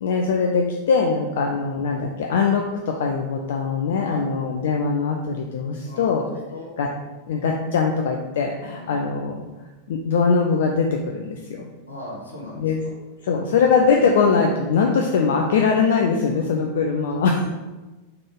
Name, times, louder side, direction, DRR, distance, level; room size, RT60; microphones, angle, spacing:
voice 1, 0.0-6.2 6.8-6.9 7.3-9.4 9.9-11.7 12.6-17.4, left 5 dB, 60° left, 2 dB, 0.4 m, -21 dB
voice 2, 5.8-6.2 6.5-6.7 8.7-9.0 11.9-12.7 13.3-13.7 17.1-17.5, left 1 dB, 80° left, -3 dB, 1.1 m, -39 dB
3.7 x 3.3 x 3.7 m, 1.1 s
figure-of-eight pair, 90°, 0 cm